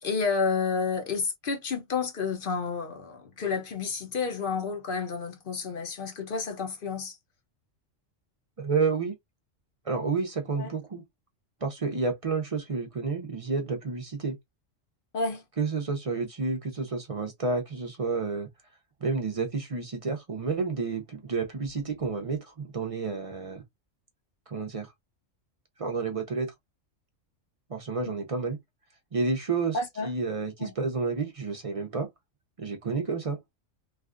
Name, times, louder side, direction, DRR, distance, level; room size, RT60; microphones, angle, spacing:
voice 1, 0.0-7.2 10.6-10.7 15.1-15.4 29.7-30.1 30.6-30.7, left 5 dB, 50° left, 0.7 m, -30 dB
voice 2, 8.6-9.1 9.8-11.0 11.6-14.4 15.6-18.5 19.0-23.6 24.5-24.9 25.8-26.5 27.7-28.6 29.1-32.1 32.6-33.4, right 4 dB, 45° right, 0.4 m, -30 dB
3.2 x 2.3 x 2.4 m
omnidirectional pair, 1.4 m